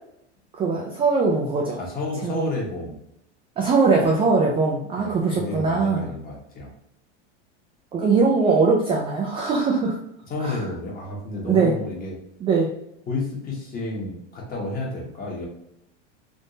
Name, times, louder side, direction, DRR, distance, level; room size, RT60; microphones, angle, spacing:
voice 1, 0.6-1.8 2.2-2.5 3.6-6.1 7.9-10.0 10.4-10.6 11.5-11.8 12.4-12.7, right 4 dB, 15° right, -2 dB, 0.3 m, -21 dB
voice 2, 1.8-3.0 4.9-6.7 10.3-12.2 13.1-15.5, left 2 dB, 25° left, -2 dB, 1.2 m, -31 dB
3.6 x 2.6 x 2.6 m, 0.77 s
supercardioid pair, 125°, 35 cm